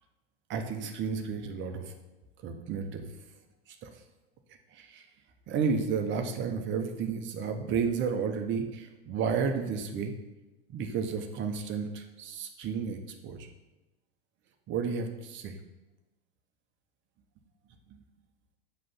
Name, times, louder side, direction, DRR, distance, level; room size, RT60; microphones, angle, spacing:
voice 1, 0.5-1.9 2.4-3.0 3.8-3.9 4.7-5.0 5.5-10.1 10.7-13.5 14.7-15.5, right 6 dB, 40° right, 6 dB, 1.0 m, -32 dB
7.6 x 3.3 x 5.8 m, 1.0 s
hypercardioid pair, 105°, 31 cm